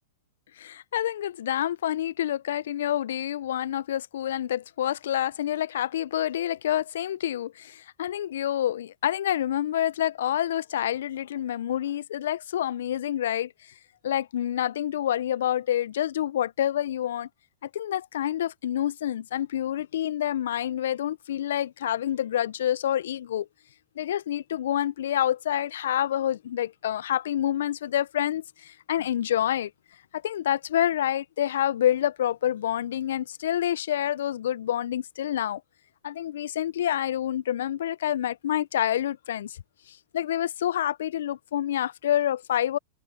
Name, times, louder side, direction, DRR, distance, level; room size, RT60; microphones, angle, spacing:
voice 1, 0.6-13.5 14.0-17.3 17.6-23.5 24.0-29.7 30.1-35.6 36.0-39.6 39.9-42.8, left 11 dB, 70° left, 0.6 m, -27 dB
hypercardioid pair, 105°, 0 cm